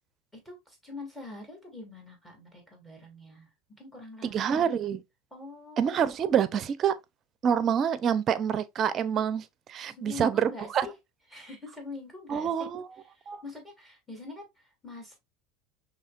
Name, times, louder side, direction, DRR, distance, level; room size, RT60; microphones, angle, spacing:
voice 1, 0.3-4.8 5.3-5.9 9.9-10.9 11.3-12.7 13.0-15.2, left 3 dB, 10° left, 2.4 m, -44 dB
voice 2, 4.2-5.0 5.8-6.9 7.4-10.9 12.3-12.8 13.3-13.4, right 8 dB, 40° right, 0.5 m, -27 dB
5.5 x 3.2 x 2.4 m
supercardioid pair, 100°, 0 cm